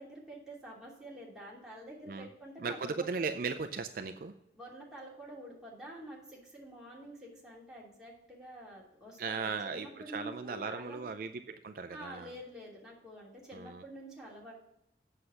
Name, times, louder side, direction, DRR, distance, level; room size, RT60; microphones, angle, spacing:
voice 1, 0.0-3.1 4.5-11.1 11.9-14.5, right 1 dB, 5° right, -6 dB, 2.8 m, -48 dB
voice 2, 2.6-4.3 9.2-12.3 13.5-13.8, right 4 dB, 55° right, 9 dB, 0.4 m, -37 dB
8.0 x 6.5 x 5.7 m, 0.84 s
head